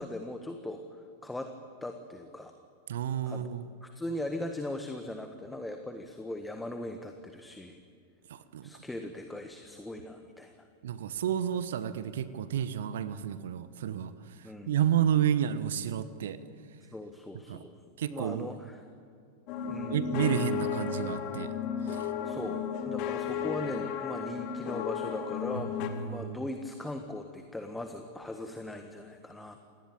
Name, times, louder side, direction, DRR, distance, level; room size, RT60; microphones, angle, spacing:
voice 1, 0.0-1.5 1.8-2.5 3.3-3.5 3.8-7.8 8.6-10.7 14.4-14.7 16.8-17.7 18.1-18.8 19.7-20.0 22.2-22.6 22.8-25.7 26.0-29.6, left 1 dB, 5° left, 6 dB, 1.7 m, -39 dB
voice 2, 2.9-3.7 8.3-8.7 10.8-16.4 17.5-17.6 18.0-18.5 19.8-21.5 21.8-22.1 25.5-26.4, right 9 dB, 60° right, 13 dB, 1.2 m, -31 dB
sound 1, 19.5-25.9, left 7 dB, 40° left, 2.6 m, -34 dB
27.5 x 20.0 x 8.9 m, 2.3 s
figure-of-eight pair, 90°, 0 cm